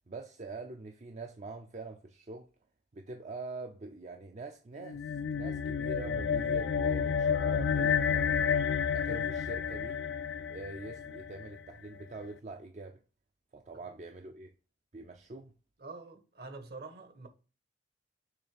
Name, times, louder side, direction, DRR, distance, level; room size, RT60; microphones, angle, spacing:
voice 1, 0.0-2.5 2.9-10.0 10.5-13.0 13.5-14.5 14.9-15.5, right 3 dB, 40° right, 0.5 m, -44 dB
sound 1, 4.8-11.5, left 7 dB, 70° left, 0.4 m, -30 dB
voice 2, 15.8-17.3, right 3 dB, 60° right, 1.4 m, -46 dB
6.5 x 3.2 x 5.1 m
head